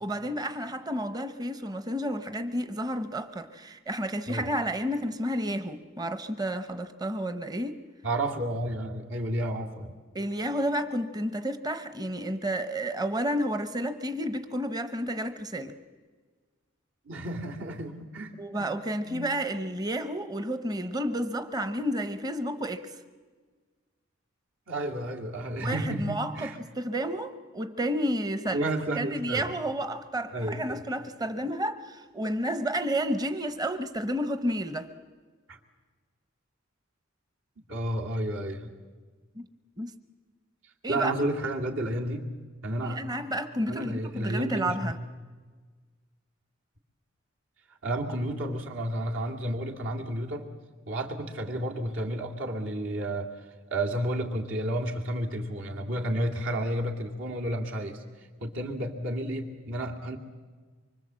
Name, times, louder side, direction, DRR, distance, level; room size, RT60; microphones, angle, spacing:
voice 1, 0.0-7.8 10.1-15.7 18.4-22.9 25.6-28.7 28.9-34.9 39.4-39.5 39.8-39.9 40.8-41.2 42.8-45.0, equal, 20° right, 0.9 m, -31 dB
voice 2, 8.0-10.0 17.1-18.7 19.1-19.4 24.7-26.6 28.5-29.5 30.3-30.8 35.5-35.6 37.7-38.7 40.9-42.3 42.6-43.1 43.7-44.9 47.8-50.5 50.9-53.3 53.7-58.0 58.4-60.2, right 1 dB, 70° right, 2.5 m, -31 dB
25.0 x 24.5 x 7.6 m
head